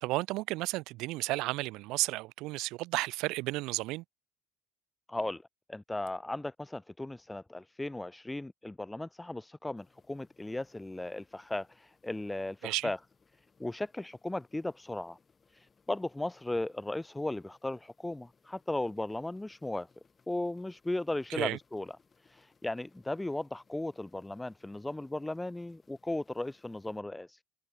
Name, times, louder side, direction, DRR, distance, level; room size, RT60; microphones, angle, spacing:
voice 1, 0.0-4.0 12.6-12.9 21.3-21.6, right 20 dB, 75° right, 0.6 m, -33 dB
voice 2, 5.1-5.4 5.7-13.0 13.6-15.2 15.5-19.9 20.3-21.9 22.2-27.4, left 2 dB, 10° left, 0.6 m, -36 dB
sound 1, 9.8-27.0, left 5 dB, 30° left, 4.1 m, -68 dB
supercardioid pair, 95°, 0 cm